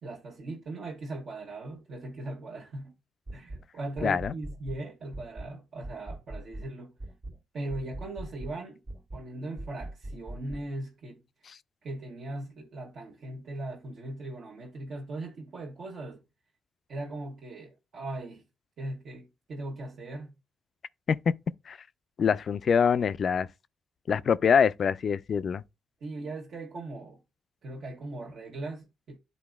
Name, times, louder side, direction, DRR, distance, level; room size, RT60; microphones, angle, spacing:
voice 1, 0.0-3.0 3.3-6.9 7.5-8.8 9.1-11.2 11.8-16.2 16.9-18.4 18.8-20.4 26.0-27.2 27.6-29.2, right 2 dB, 65° right, 1.2 m, -39 dB
sound 1, 3.3-3.7 4.0-4.8 5.1-5.5 5.8-6.7 7.0-7.4 7.7-8.6 8.9-9.3 9.6-10.7, right 1 dB, 50° right, 1.5 m, -41 dB
voice 2, 4.0-4.3 21.1-21.2 21.7-21.8 22.2-23.5 24.1-25.6, left 7 dB, 60° left, 0.3 m, -24 dB
11.5 x 4.1 x 2.3 m
supercardioid pair, 55°, 0 cm